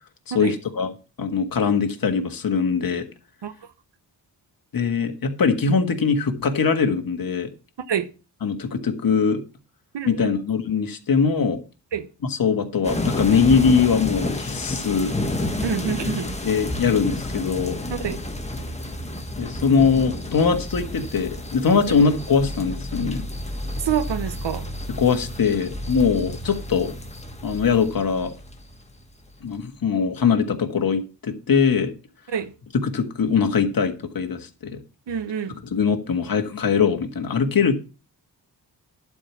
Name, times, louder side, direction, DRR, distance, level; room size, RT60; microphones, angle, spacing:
voice 1, 0.3-0.9 1.2-3.0 4.7-7.5 8.4-9.4 10.1-11.6 12.3-15.1 16.4-17.8 19.4-23.3 25.0-26.9 27.4-28.3 29.4-31.9 32.8-34.8 35.7-37.7, left 5 dB, 55° left, 1.6 m, -21 dB
voice 2, 9.9-10.3 11.9-12.1 15.6-16.4 18.0-18.2 21.9-22.0 23.8-24.7 32.3-32.5 35.1-35.5, right 8 dB, 90° right, 1.1 m, -27 dB
sound 1, 12.8-29.3, left 1 dB, 15° left, 1.4 m, -30 dB
11.5 x 4.9 x 7.1 m
wide cardioid pair, 125°, 41 cm